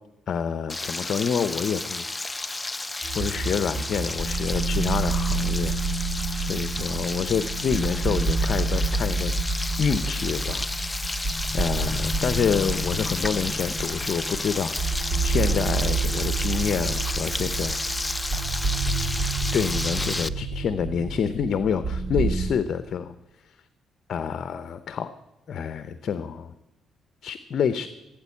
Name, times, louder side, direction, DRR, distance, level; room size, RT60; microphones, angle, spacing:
voice 1, 0.3-2.6 3.1-9.3 9.8-11.0 11.5-17.8 19.5-23.1 24.1-25.1 25.5-26.5 27.2-27.9, left 7 dB, 60° left, 12 dB, 0.7 m, -28 dB
Frying (food), 0.7-20.3, left 2 dB, 15° left, 0.6 m, -32 dB
sound 1, 3.0-22.4, right 3 dB, 50° right, 3.4 m, -28 dB
17.0 x 9.1 x 8.4 m, 0.97 s
cardioid pair, 90°, 0 cm